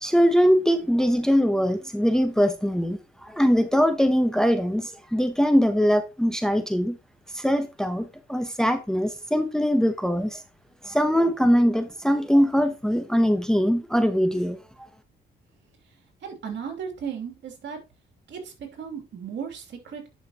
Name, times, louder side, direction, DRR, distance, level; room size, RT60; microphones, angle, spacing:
voice 1, 0.0-7.0 7.3-10.4 10.8-14.6, equal, 5° left, 0.9 m, -22 dB
voice 2, 16.2-17.8 18.3-20.1, right 7 dB, 65° right, 3.0 m, -35 dB
10.5 x 5.4 x 2.9 m
cardioid pair, 90°, 20 cm